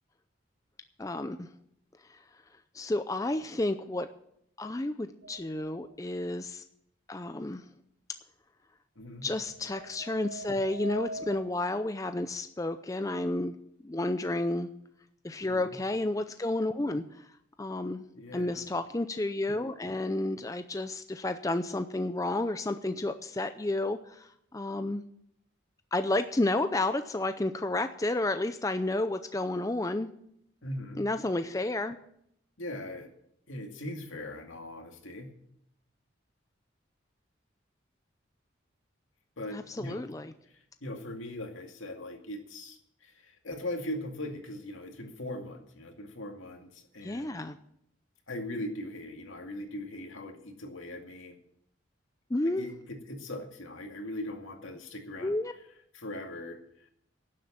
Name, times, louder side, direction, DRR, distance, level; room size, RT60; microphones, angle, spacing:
voice 1, 1.0-1.5 2.1-2.2 2.7-4.1 4.6-6.6 7.1-7.6 9.2-13.5 13.8-14.7 15.2-17.0 17.6-18.0 18.3-25.0 25.9-30.1 31.0-32.0 39.5-40.3 47.0-47.6 52.3-52.6 55.2-55.5, left 2 dB, 15° left, 9 dB, 0.5 m, -31 dB
sound 1, 5.2-5.9 9.2-11.4, right 1 dB, 75° right, 5.3 m, -42 dB
voice 2, 9.0-9.3 15.4-15.8 18.2-18.7 30.6-31.0 32.6-33.1 33.5-35.3 39.4-40.0 40.4-47.4 48.3-51.4 52.4-55.4 55.9-56.9, left 1 dB, 80° left, 3 dB, 2.2 m, -40 dB
11.5 x 7.7 x 8.7 m, 0.72 s
head